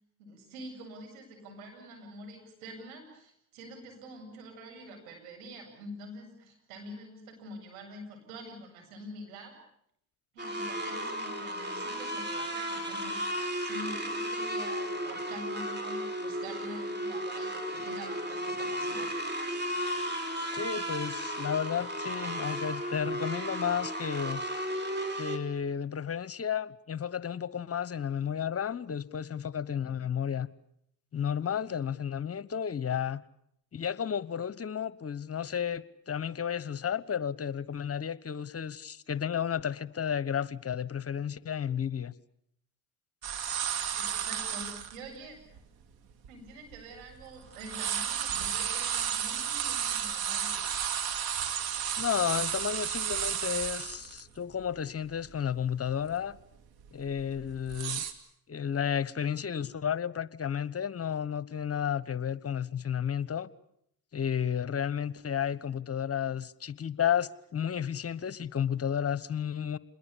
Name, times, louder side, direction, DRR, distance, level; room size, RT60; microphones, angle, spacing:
voice 1, 0.2-9.5 10.3-19.2 43.9-45.6 46.3-50.6, right 1 dB, 90° right, 7.9 m, -46 dB
sound 1, 10.4-25.4, equal, 25° right, 4.8 m, -34 dB
voice 2, 20.5-24.4 25.2-30.5 31.1-33.2 33.7-42.1 51.6-51.7 52.0-56.4 56.9-58.0 58.5-63.5 64.1-69.8, left 8 dB, 35° left, 1.1 m, -32 dB
sound 2, 43.2-45.0 45.5-45.6 46.2-47.3 47.5-54.2 54.6-54.7 55.1-55.5 55.9-56.1 56.8-58.1, right 9 dB, 65° right, 2.9 m, -32 dB
27.5 x 21.5 x 8.4 m
supercardioid pair, 65°, 40 cm